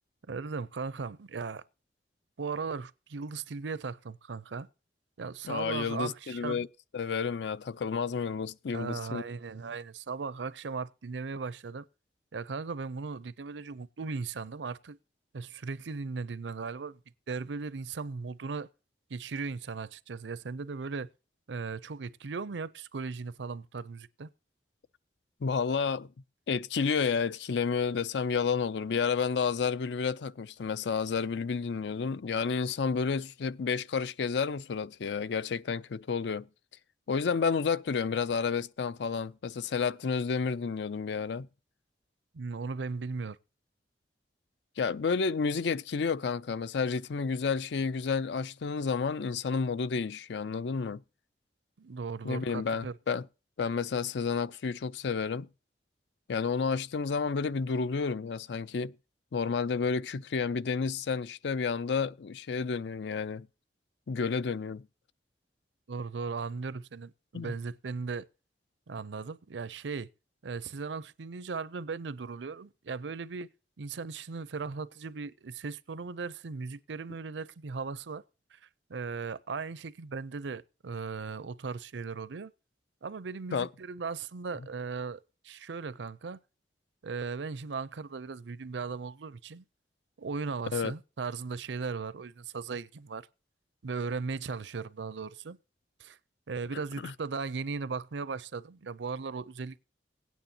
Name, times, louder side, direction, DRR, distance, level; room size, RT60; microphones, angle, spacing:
voice 1, 0.3-1.6 2.4-4.7 5.2-6.6 8.7-11.9 12.3-15.0 15.3-17.0 17.3-18.7 19.1-21.1 21.5-24.3 42.3-43.4 51.8-52.9 65.9-68.3 68.9-70.1 70.4-73.5 73.8-78.2 78.5-78.6 78.9-82.5 83.0-86.4 87.0-89.6 90.2-93.3 93.8-95.6 96.0-96.2 96.5-99.9, right 4 dB, 90° right, 0.6 m, -37 dB
voice 2, 5.4-6.7 6.9-9.2 25.4-26.1 26.5-36.5 37.1-41.5 44.8-51.0 52.2-53.2 53.6-55.5 56.3-58.9 59.3-63.5 64.1-64.9 67.3-67.5 83.5-83.7 90.7-90.9 97.0-97.1, left 5 dB, 80° left, 0.4 m, -30 dB
18.0 x 9.3 x 2.8 m
head